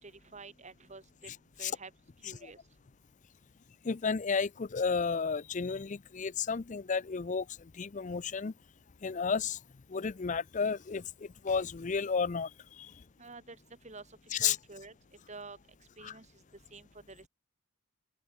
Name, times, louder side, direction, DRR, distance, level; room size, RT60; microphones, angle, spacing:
voice 1, 0.0-1.3 1.6-1.9 2.2-2.6 13.2-13.6 13.8-14.0 14.4-14.9 15.3-15.6 16.0-16.3 16.7-17.3, right 3 dB, 35° right, 2.2 m, -48 dB
voice 2, 3.8-7.4 7.8-8.5 9.0-9.6 9.9-12.5 12.8-12.9 14.3-14.6 16.0-16.1, left 5 dB, 35° left, 0.5 m, -32 dB
open air
head